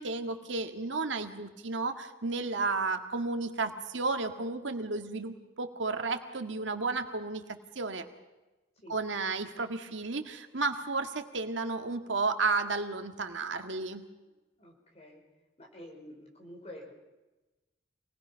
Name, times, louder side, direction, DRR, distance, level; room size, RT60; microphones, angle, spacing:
voice 1, 0.0-8.1 8.9-14.0, right 3 dB, 90° right, 6 dB, 1.9 m, -33 dB
voice 2, 14.6-15.2 15.6-16.9, left 1 dB, 35° left, 0 dB, 5.1 m, -48 dB
27.5 x 19.5 x 5.8 m, 1.1 s
head